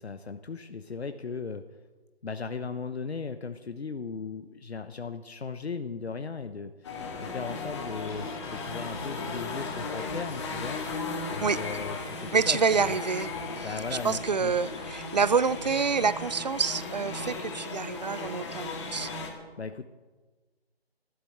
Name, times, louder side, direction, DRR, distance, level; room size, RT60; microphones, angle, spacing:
voice 1, 0.0-1.7 2.2-11.0 11.3-12.9 13.6-14.5 19.6-19.8, left 5 dB, 80° left, 9 dB, 1.0 m, -37 dB
sound 1, 6.8-19.3, left 3 dB, 25° left, 2.2 m, -36 dB
sound 2, 8.1-10.9, left 4 dB, 50° left, 1.4 m, -47 dB
voice 2, 11.4-11.8 12.3-13.3 13.6-13.7 14.0-19.1, right 5 dB, 40° right, 17 dB, 0.6 m, -27 dB
14.0 x 12.5 x 7.9 m, 1.3 s
figure-of-eight pair, 165°, 32 cm